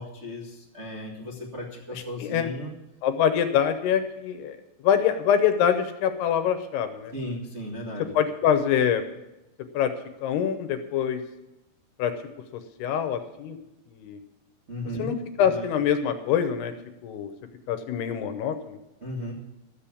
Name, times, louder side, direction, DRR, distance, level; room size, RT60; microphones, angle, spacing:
voice 1, 0.0-2.7 7.1-8.1 14.7-15.1 15.4-15.7 19.0-19.3, equal, 90° right, -4 dB, 0.6 m, -35 dB
voice 2, 2.2-2.5 3.0-4.6 4.8-7.1 8.1-9.0 9.7-9.9 10.2-11.2 12.0-12.1 12.8-13.6 13.9-14.2 15.0-16.7 17.0-17.3 17.7-18.8, left 8 dB, 75° left, 8 dB, 2.7 m, -24 dB
13.5 x 7.4 x 8.4 m, 0.93 s
omnidirectional pair, 5.2 m